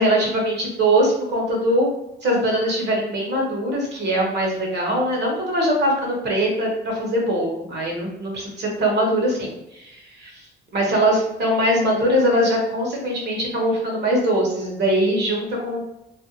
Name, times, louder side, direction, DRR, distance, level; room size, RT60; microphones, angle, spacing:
voice 1, 0.0-1.9 2.2-10.3 10.7-15.8, right 1 dB, 60° right, -2 dB, 1.1 m, -22 dB
2.5 x 2.1 x 2.8 m, 0.88 s
cardioid pair, 90°, 20 cm